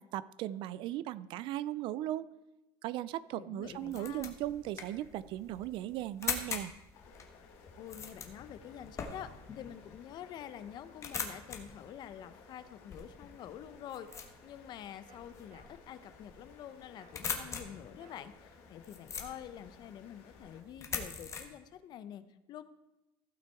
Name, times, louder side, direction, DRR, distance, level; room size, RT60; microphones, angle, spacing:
voice 1, 0.0-2.3 2.8-6.7, right 13 dB, 60° right, 18 dB, 0.4 m, -37 dB
voice 2, 3.3-4.3 7.8-9.3 9.6-22.2 22.5-22.6, left 10 dB, 50° left, 12 dB, 0.7 m, -47 dB
sound 1, 3.6-21.4, left 6 dB, 30° left, 1.2 m, -44 dB
sound 2, 6.9-20.6, left 5 dB, 70° left, 2.2 m, -59 dB
sound 3, 14.1-14.3 15.1-15.2 15.5-15.7 17.0-17.1 17.5-17.6 18.0-18.2, right 4 dB, 75° right, 2.1 m, -59 dB
15.0 x 5.9 x 4.5 m, 0.98 s
cardioid pair, 140°, 10 cm